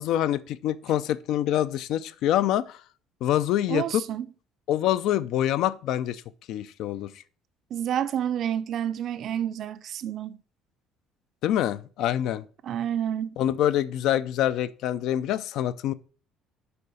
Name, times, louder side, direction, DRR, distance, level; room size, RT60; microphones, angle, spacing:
voice 1, 0.0-2.8 3.2-4.0 4.7-6.2 6.5-7.2 11.4-12.4 13.4-15.9, left 12 dB, 55° left, 0.4 m, -25 dB
voice 2, 3.7-4.3 7.7-10.4 12.6-13.4, right 10 dB, 40° right, 0.5 m, -29 dB
6.9 x 4.7 x 4.9 m
cardioid pair, 180°, 0 cm